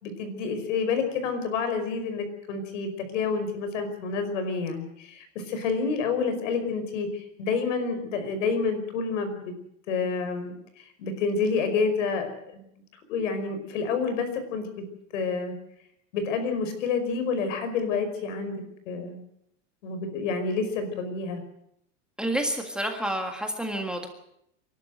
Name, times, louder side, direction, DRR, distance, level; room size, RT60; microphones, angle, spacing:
voice 1, 0.0-9.5 9.9-12.6 13.1-14.7 15.1-15.5 16.1-19.2 19.8-21.4, left 5 dB, 75° left, 9 dB, 5.3 m, -29 dB
voice 2, 22.2-24.1, right 1 dB, ahead, 3 dB, 1.7 m, -29 dB
27.0 x 12.0 x 8.0 m, 0.75 s
supercardioid pair, 160°, 38 cm